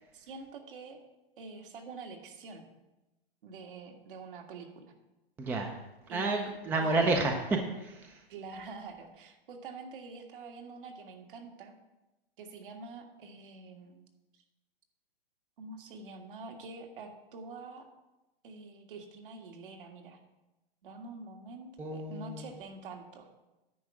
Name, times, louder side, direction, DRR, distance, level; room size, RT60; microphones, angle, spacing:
voice 1, 0.1-1.0 1.4-2.7 3.4-4.9 6.1-7.1 8.3-11.7 12.4-14.0 15.6-17.9 18.4-20.2 20.8-23.3, right 3 dB, 60° right, 2 dB, 1.9 m, -46 dB
voice 2, 5.4-5.7 6.1-8.2 21.8-22.5, right 2 dB, 5° right, 3 dB, 0.5 m, -30 dB
9.9 x 4.7 x 7.5 m, 1.0 s
hypercardioid pair, 145°, 30 cm